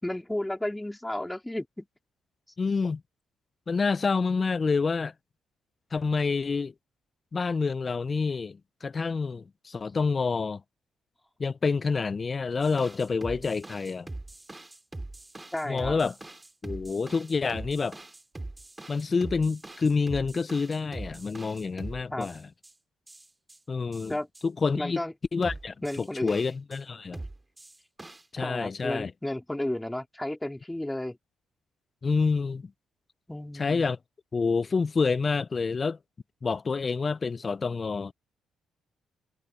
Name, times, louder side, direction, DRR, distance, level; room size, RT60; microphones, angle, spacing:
voice 1, 0.0-1.9 15.5-16.0 22.1-22.3 24.1-24.3 24.7-25.1 25.8-26.4 28.4-31.2 33.3-33.8, left 1 dB, 10° left, 3.9 m, -33 dB
voice 2, 2.6-3.0 3.7-5.1 5.9-6.7 7.3-10.6 11.4-14.1 15.7-16.1 16.6-18.0 18.9-22.4 23.7-24.2 24.4-25.0 25.3-27.2 28.3-29.1 32.0-32.7 33.5-34.0 34.3-36.0 36.4-38.1, left 4 dB, 40° left, 0.8 m, -28 dB
sound 1, 12.6-22.7 23.1-23.6 23.9-24.4 25.4-26.8 27.1-28.2, right 2 dB, 20° right, 3.2 m, -42 dB
supercardioid pair, 55°, 0 cm